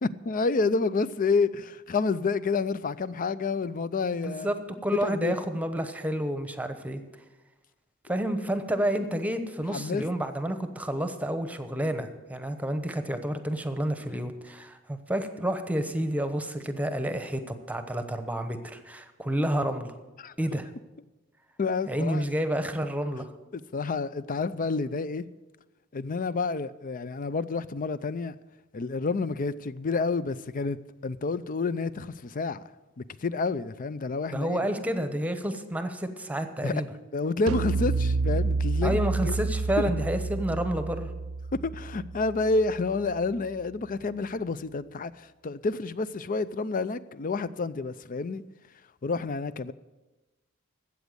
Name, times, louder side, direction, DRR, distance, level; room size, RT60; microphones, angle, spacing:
voice 1, 0.0-4.5 5.0-5.3 9.7-10.0 20.2-20.6 21.6-22.2 23.5-25.3 25.9-28.3 28.7-30.8 31.0-32.6 33.0-34.6 36.6-36.8 37.1-39.3 39.8-39.9 41.6-48.4 49.0-49.7, left 4 dB, 40° left, 0.5 m, -29 dB
voice 2, 4.2-4.6 4.8-7.0 8.1-19.9 20.4-20.7 21.9-23.3 34.3-36.9 38.8-41.1, right 1 dB, 5° right, 1.0 m, -29 dB
sound 1, 37.5-42.9, right 3 dB, 85° right, 0.4 m, -29 dB
13.5 x 8.2 x 8.0 m
head